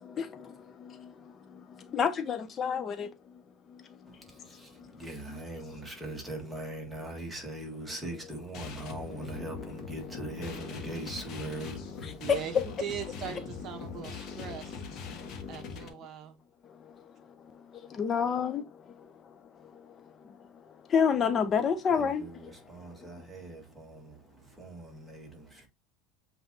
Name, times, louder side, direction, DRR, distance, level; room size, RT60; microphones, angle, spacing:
voice 1, 0.2-3.1 3.7-4.9 5.3-5.8 8.6-10.9 11.9-12.4 15.1-15.5 16.7-18.6 19.0-22.5 23.0-23.3, left 7 dB, 30° left, 0.4 m, -33 dB
voice 2, 4.4-11.8 22.0-22.3 22.7-24.2 24.6-25.7, right 1 dB, 5° right, 1.5 m, -41 dB
sound 1, 8.5-15.9, left 5 dB, 45° left, 1.1 m, -41 dB
voice 3, 12.2-14.8 15.5-16.4, right 8 dB, 40° right, 0.7 m, -40 dB
7.5 x 2.6 x 2.6 m
supercardioid pair, 140°, 0 cm